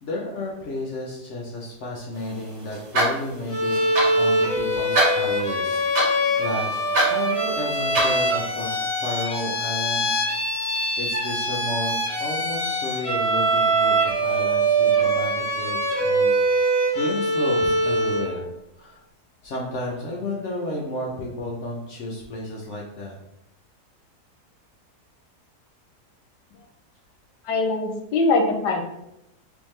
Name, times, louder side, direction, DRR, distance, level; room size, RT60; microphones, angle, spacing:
voice 1, 0.0-10.2 11.0-18.5 18.8-19.0 19.4-23.2, left 2 dB, 60° left, -2 dB, 0.8 m, -32 dB
sound 1, 2.1-8.8, right 1 dB, 80° right, 2.0 m, -28 dB
Bowed string instrument, 3.5-18.4, right 1 dB, 25° left, 0.8 m, -23 dB
voice 2, 27.5-28.8, left 3 dB, 80° left, 3 dB, 1.3 m, -22 dB
3.6 x 3.4 x 3.1 m, 0.85 s
omnidirectional pair, 1.8 m